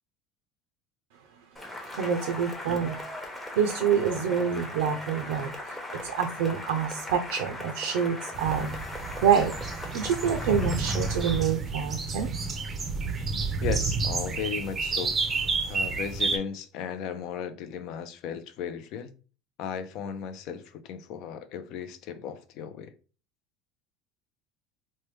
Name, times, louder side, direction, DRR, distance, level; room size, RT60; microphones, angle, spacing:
Cheering / Applause, 1.6-11.6, left 1 dB, 5° left, 0.8 m, -39 dB
voice 1, 1.9-3.0 3.5-8.8 9.2-9.5 9.9-12.4, right 7 dB, 85° right, 0.4 m, -27 dB
sound 1, 8.3-16.4, right 4 dB, 25° right, 0.5 m, -30 dB
voice 2, 13.6-15.2 15.6-19.1 19.6-22.9, left 7 dB, 60° left, 0.4 m, -36 dB
3.2 x 2.2 x 3.1 m
supercardioid pair, 125°, 0 cm